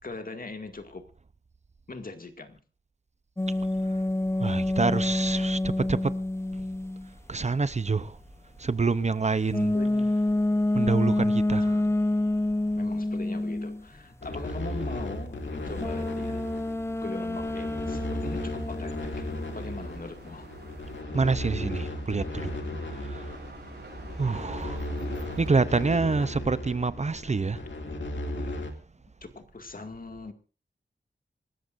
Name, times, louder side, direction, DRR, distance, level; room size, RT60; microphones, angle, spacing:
voice 1, 0.0-1.1 1.9-2.6 9.7-10.1 12.8-16.5 17.0-19.3 19.5-20.5 29.2-30.3, left 3 dB, 50° left, 2.1 m, -40 dB
sound 1, 3.4-7.2 9.5-13.8 15.8-19.6, left 1 dB, 15° left, 0.8 m, -28 dB
voice 2, 4.4-6.2 7.3-8.2 8.6-9.7 10.7-11.9 21.1-22.6 22.8-23.4 24.1-24.9 25.4-27.6, right 4 dB, 35° right, 0.6 m, -27 dB
sound 2, 14.2-28.7, left 1 dB, 85° left, 2.4 m, -36 dB
sound 3, 17.7-25.6, right 3 dB, 60° right, 7.4 m, -47 dB
26.5 x 14.0 x 2.6 m
wide cardioid pair, 100°, 19 cm